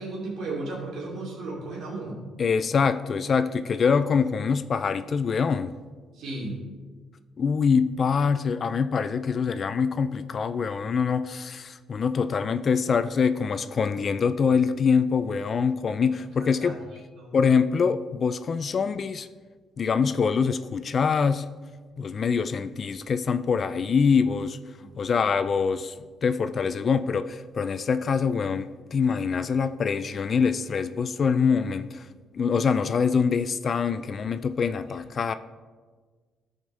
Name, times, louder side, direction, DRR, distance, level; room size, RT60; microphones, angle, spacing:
voice 1, 0.0-2.2 6.1-6.5 16.4-16.7 17.2-17.4 24.8-24.9, right 2 dB, 75° right, 2.6 m, -35 dB
voice 2, 2.4-5.8 7.4-16.8 17.3-19.3 19.8-21.5 22.0-24.6 25.0-26.0 26.2-32.1 32.3-35.3, left 6 dB, 50° left, 0.3 m, -24 dB
13.0 x 5.1 x 4.1 m
cardioid pair, 90°, 0 cm